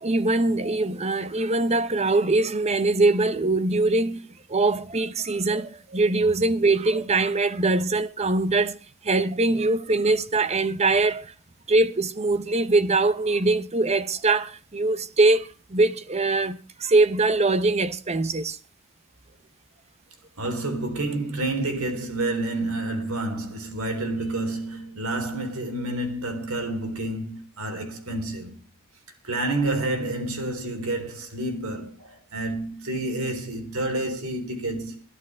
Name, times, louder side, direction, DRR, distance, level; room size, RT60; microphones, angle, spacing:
voice 1, 0.0-8.8 9.0-11.3 11.7-18.6, right 2 dB, 30° right, 0.8 m, -22 dB
voice 2, 20.4-28.6 29.2-35.0, right 2 dB, 70° right, 3.9 m, -29 dB
22.0 x 14.0 x 3.5 m
head